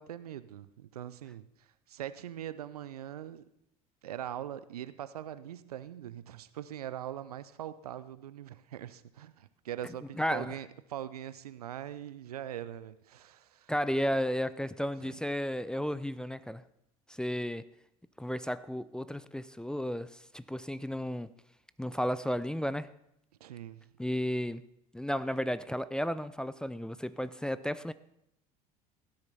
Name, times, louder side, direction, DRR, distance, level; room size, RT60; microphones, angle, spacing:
voice 1, 0.0-1.5 1.9-3.4 4.0-13.7 15.0-15.2 23.4-23.9, right 11 dB, 80° right, 15 dB, 0.6 m, -42 dB
voice 2, 10.2-10.6 13.7-16.6 17.2-17.7 18.2-21.3 21.8-22.9 24.0-24.6 24.9-27.9, equal, 5° left, 16 dB, 0.4 m, -33 dB
16.5 x 9.6 x 4.2 m, 0.79 s
figure-of-eight pair, 65°, 19 cm